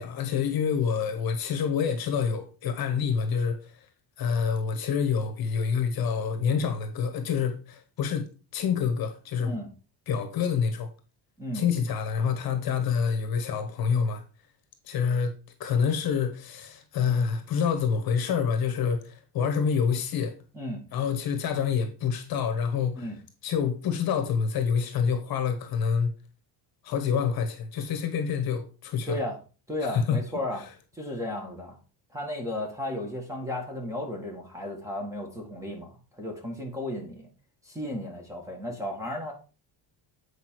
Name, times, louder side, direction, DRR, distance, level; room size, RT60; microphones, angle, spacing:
voice 1, 0.0-3.9 4.2-9.5 10.1-10.9 11.5-14.2 14.8-15.3 15.6-20.3 20.9-23.1 23.4-26.1 26.8-29.2 29.8-30.2, left 6 dB, 50° left, 1.3 m, -27 dB
voice 2, 29.7-30.6 30.9-31.8 32.1-37.3 37.6-39.3, left 1 dB, 5° right, 1.8 m, -34 dB
8.2 x 5.1 x 4.6 m
cardioid pair, 170°, 48 cm